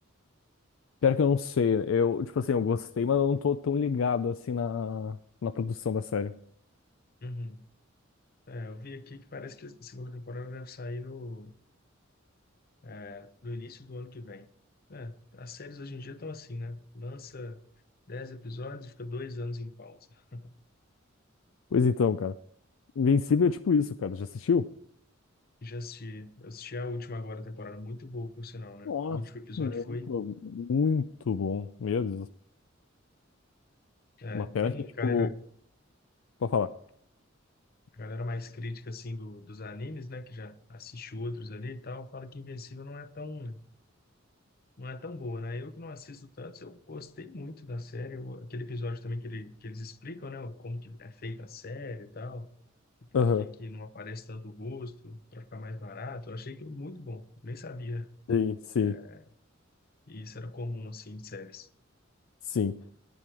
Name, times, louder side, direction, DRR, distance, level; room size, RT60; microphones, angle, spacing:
voice 1, 1.0-5.2 5.4-6.3 21.7-22.3 23.0-24.7 28.9-29.2 29.6-32.3 34.3-34.7 35.0-35.3 36.4-36.7 53.1-53.4 58.3-59.0 62.5-62.7, left 6 dB, 75° left, 0.4 m, -27 dB
voice 2, 7.2-7.6 8.5-11.5 12.8-14.5 14.9-17.6 18.1-20.5 25.6-30.1 34.2-35.4 37.9-43.6 44.8-52.5 53.0-58.1 58.8-59.2 60.1-61.7, left 2 dB, 50° left, 0.7 m, -40 dB
10.5 x 10.0 x 4.7 m
head